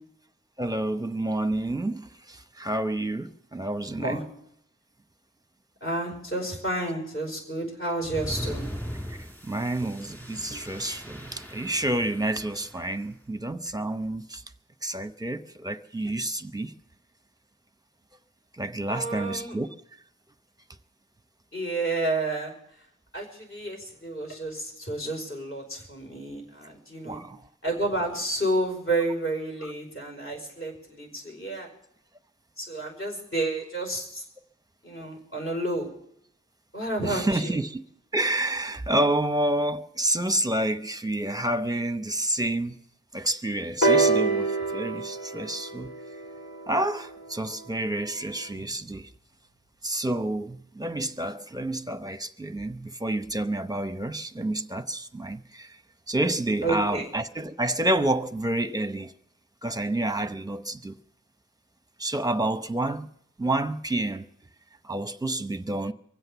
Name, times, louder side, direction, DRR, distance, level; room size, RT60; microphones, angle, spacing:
voice 1, 0.6-4.2 9.4-14.4 14.8-16.7 18.6-19.7 27.0-27.4 29.6-29.7 37.0-37.8 38.1-42.8 43.1-45.9 46.7-49.1 49.8-55.8 56.1-59.1 59.6-61.0 62.0-63.1 63.4-64.3 64.8-65.9, right 1 dB, 15° right, 0.8 m, -29 dB
voice 2, 5.8-8.6 18.9-19.6 21.5-22.5 23.1-27.2 27.6-31.7 32.6-34.2 34.8-35.9 36.7-37.5 56.6-57.1, right 2 dB, 45° left, 5.2 m, -30 dB
sound 1, 8.0-12.9, equal, 5° left, 2.1 m, -39 dB
sound 2, 43.8-47.6 48.6-48.7, right 3 dB, 70° left, 2.2 m, -26 dB
23.5 x 7.9 x 6.9 m
wide cardioid pair, 50°, 29 cm